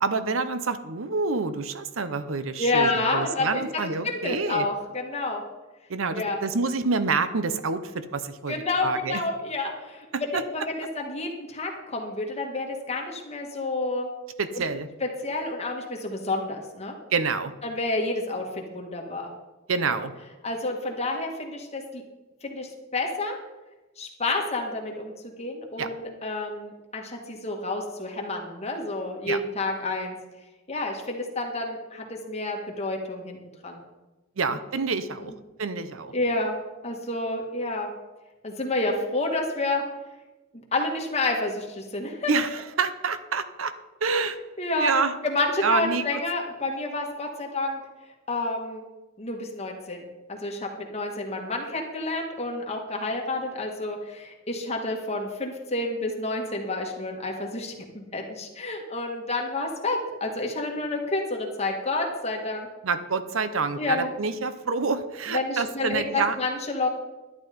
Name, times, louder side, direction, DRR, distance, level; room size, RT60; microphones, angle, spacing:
voice 1, 0.0-4.7 5.9-8.5 8.8-9.2 10.1-10.4 14.4-14.9 17.1-17.5 19.7-20.1 25.8-25.9 29.3-29.4 34.4-35.3 35.6-36.1 42.3-43.7 44.0-44.4 44.8-45.1 45.6-46.2 62.8-66.4, right 4 dB, 75° right, 12 dB, 0.8 m, -27 dB
voice 2, 2.6-5.4 6.1-6.4 8.5-14.1 14.5-14.6 15.0-16.9 17.6-19.3 19.9-20.0 20.4-22.0 22.4-23.4 24.0-30.1 30.7-33.4 33.6-33.8 34.5-34.6 35.2-35.3 36.1-36.6 36.8-37.9 38.4-39.8 40.7-42.3 44.6-44.9 45.2-47.8 48.3-48.8 49.2-62.7 63.8-64.1 65.3-66.9, left 2 dB, 30° left, 1 dB, 1.9 m, -29 dB
11.5 x 9.9 x 5.2 m, 1.1 s
head